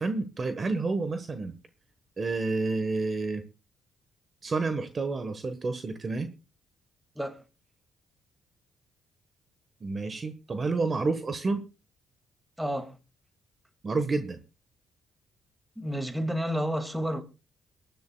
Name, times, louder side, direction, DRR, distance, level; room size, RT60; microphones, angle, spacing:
voice 1, 0.0-1.5 2.2-3.4 4.4-6.3 9.8-11.6 13.8-14.4, right 3 dB, 35° right, 1.2 m, -29 dB
voice 2, 12.6-13.0 15.8-17.2, equal, 5° right, 2.1 m, -30 dB
23.0 x 10.5 x 2.3 m
cardioid pair, 90°, 0 cm